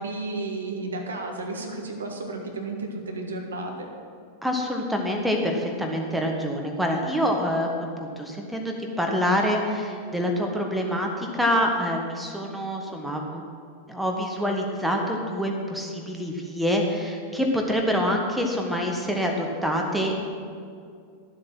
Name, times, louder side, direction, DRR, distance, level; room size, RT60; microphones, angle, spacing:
voice 1, 0.0-3.9, right 2 dB, 70° right, 2 dB, 1.6 m, -32 dB
voice 2, 4.4-13.4 13.9-20.2, equal, ahead, 1 dB, 1.4 m, -26 dB
12.5 x 7.7 x 6.1 m, 2.3 s
figure-of-eight pair, 90°, 0 cm